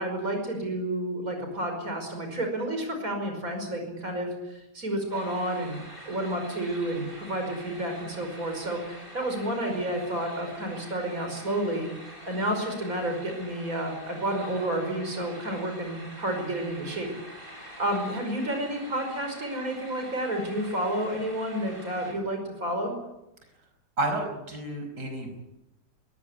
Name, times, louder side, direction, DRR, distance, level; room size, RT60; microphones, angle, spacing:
voice 1, 0.0-5.8 6.1-11.9 12.2-17.1 17.8-22.9, right 1 dB, 55° right, 4 dB, 5.8 m, -30 dB
sound 1, 5.1-22.1, equal, 30° right, 7.1 m, -46 dB
voice 2, 24.0-25.4, right 2 dB, 90° right, 4 dB, 5.8 m, -31 dB
22.0 x 19.0 x 9.9 m, 0.92 s
omnidirectional pair, 1.8 m